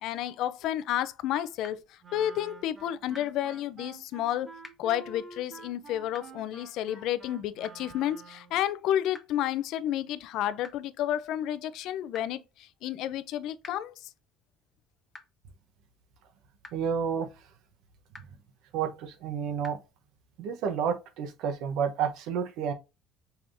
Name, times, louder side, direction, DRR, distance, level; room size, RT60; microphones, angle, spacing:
voice 1, 0.0-4.5 4.8-14.1, left 12 dB, 65° left, 0.5 m, -31 dB
sound 1, 1.6-1.7 3.1-3.2 4.6-4.7 6.1-6.2 7.6-7.7 9.1-9.2 10.6-10.7 12.1-12.2 13.6-13.7 15.1-15.2 16.6-16.7 18.1-18.2 19.6-19.7, left 2 dB, 15° left, 1.0 m, -45 dB
Wind instrument woodwind instrument, 2.0-8.6, right 3 dB, 30° right, 1.7 m, -49 dB
voice 2, 16.7-17.3 18.7-19.8 20.4-22.7, right 7 dB, 75° right, 1.0 m, -30 dB
5.7 x 3.5 x 2.7 m
cardioid pair, 125°, 0 cm